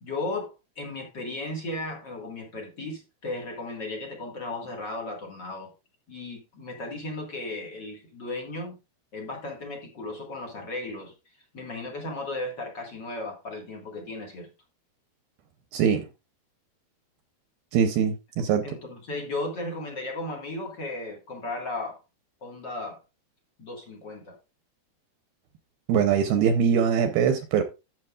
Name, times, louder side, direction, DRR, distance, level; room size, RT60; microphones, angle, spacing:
voice 1, 0.0-5.7 6.1-8.8 9.1-14.5 18.6-22.0 22.4-23.0 23.6-24.4, left 2 dB, 50° left, 1.3 m, -35 dB
voice 2, 15.7-16.0 17.7-18.6 25.9-27.6, right 7 dB, 75° right, 2.4 m, -22 dB
12.0 x 8.1 x 2.4 m
omnidirectional pair, 5.1 m